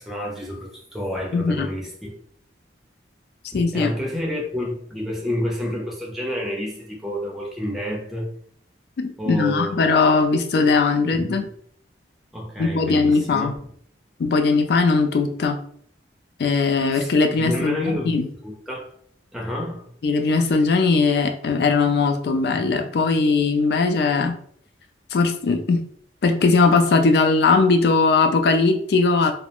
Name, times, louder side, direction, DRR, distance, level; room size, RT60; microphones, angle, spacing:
voice 1, 0.0-2.1 3.5-8.3 9.2-9.9 11.1-11.4 12.3-13.5 16.5-18.1 18.4-18.9 19.3-19.9, left 1 dB, ahead, 0.5 m, -29 dB
voice 2, 1.3-1.7 3.5-3.9 9.0-11.4 12.6-13.5 14.2-15.6 16.4-18.3 20.0-24.4 25.1-25.8 26.2-29.3, left 4 dB, 60° left, 0.3 m, -19 dB
2.4 x 2.0 x 2.8 m
head